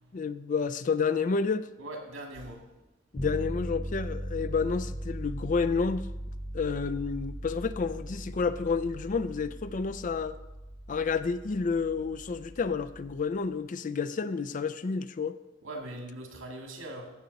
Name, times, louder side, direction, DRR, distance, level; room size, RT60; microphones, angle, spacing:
voice 1, 0.1-1.7 3.1-6.1 6.5-10.4 10.9-15.4, left 5 dB, 40° left, 13 dB, 0.4 m, -30 dB
voice 2, 1.8-2.6 15.6-17.1, right 1 dB, 85° right, 2 dB, 2.1 m, -41 dB
sound 1, 3.2-13.3, equal, 5° left, 0.7 m, -39 dB
15.5 x 6.6 x 4.1 m, 1.0 s
head